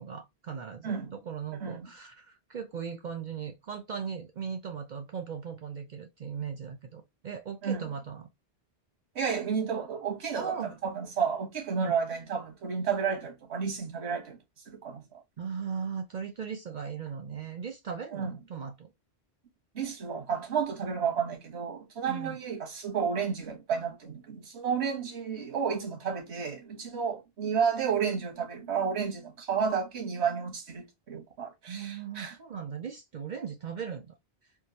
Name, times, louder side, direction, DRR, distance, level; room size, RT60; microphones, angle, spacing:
voice 1, 0.0-8.3 10.3-10.7 11.8-11.9 15.4-18.9 22.1-22.4 31.7-34.1, right 6 dB, 55° right, 0.6 m, -38 dB
voice 2, 0.8-1.1 1.6-1.9 7.6-7.8 9.1-14.4 14.7-15.0 18.1-18.4 19.7-32.4, right 6 dB, 85° right, 1.4 m, -31 dB
3.6 x 2.6 x 2.7 m
omnidirectional pair, 1.1 m